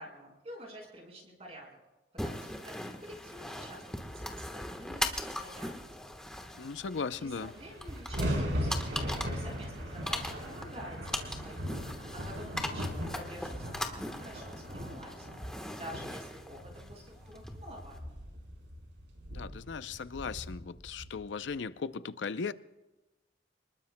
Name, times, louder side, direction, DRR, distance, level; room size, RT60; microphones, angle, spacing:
voice 1, 0.0-1.8 2.1-3.9 4.1-5.9 7.2-15.3 15.7-18.2, equal, 35° right, 0 dB, 5.1 m, -49 dB
sound 1, 2.2-18.0, left 1 dB, 5° left, 1.2 m, -40 dB
voice 2, 6.6-7.5 19.3-22.5, left 5 dB, 85° left, 13 dB, 0.5 m, -37 dB
sound 2, 6.9-7.0 7.2-21.6, equal, 90° right, 4.1 m, -39 dB
27.5 x 20.0 x 2.2 m, 1.1 s
head